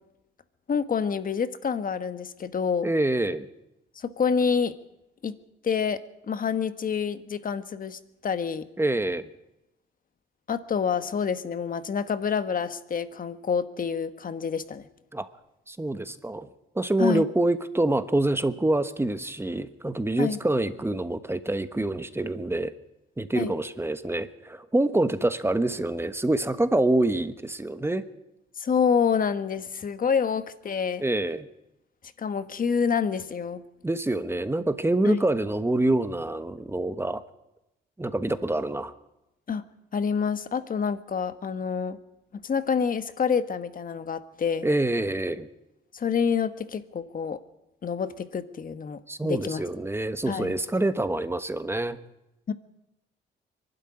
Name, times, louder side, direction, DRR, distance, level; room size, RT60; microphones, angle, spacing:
voice 1, 0.7-2.9 4.0-4.7 5.2-5.3 5.6-6.0 6.3-8.6 10.5-14.9 17.0-17.2 20.2-20.4 23.3-23.5 28.6-31.0 32.2-33.6 35.0-35.2 39.5-39.6 39.9-42.0 42.3-44.7 45.9-47.4 47.8-49.6 50.3-50.5 52.5-52.6, left 6 dB, 45° left, 12 dB, 1.4 m, -27 dB
voice 2, 2.8-3.5 8.8-9.3 15.1-15.3 15.7-16.5 16.7-22.7 23.2-28.0 31.0-31.5 33.8-37.2 38.0-38.9 44.6-45.5 49.1-52.0, right 2 dB, 10° right, 11 dB, 1.2 m, -26 dB
23.0 x 12.5 x 9.8 m, 0.91 s
cardioid pair, 90°, 20 cm